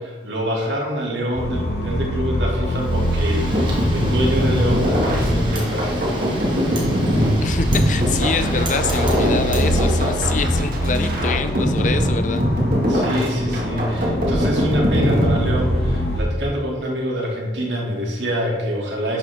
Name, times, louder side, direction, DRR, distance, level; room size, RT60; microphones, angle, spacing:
voice 1, 0.2-6.1 12.9-19.2, equal, 80° right, -2 dB, 2.6 m, -25 dB
sound 1, 1.3-16.2, equal, 60° left, 1.7 m, -24 dB
Wind, 2.7-10.8, right 1 dB, 25° right, 1.6 m, -32 dB
sound 2, 3.5-16.1, equal, 50° right, 2.0 m, -22 dB
voice 2, 7.4-12.4, left 4 dB, 45° left, 9 dB, 0.6 m, -25 dB
10.5 x 8.1 x 3.6 m, 1.4 s
head